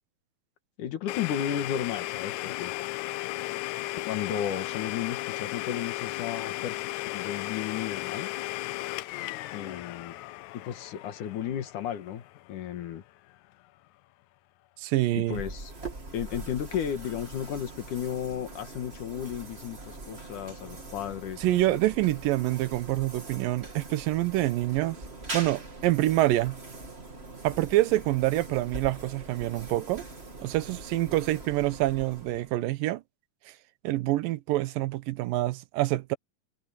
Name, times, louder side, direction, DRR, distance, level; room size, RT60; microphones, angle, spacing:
voice 1, 0.8-2.7 4.1-8.3 9.5-10.2 10.6-13.0 15.1-15.7 16.1-21.8, left 9 dB, 65° left, 2.9 m, -34 dB
Domestic sounds home sounds, 1.1-12.7, left 18 dB, 85° left, 1.7 m, -35 dB
voice 2, 14.8-15.4 21.4-25.0 25.3-26.6 27.4-30.0 30.4-33.0 33.5-33.6 33.8-36.2, right 16 dB, 80° right, 2.5 m, -26 dB
sound 1, 15.3-32.7, right 2 dB, 20° right, 2.3 m, -42 dB
omnidirectional pair, 4.1 m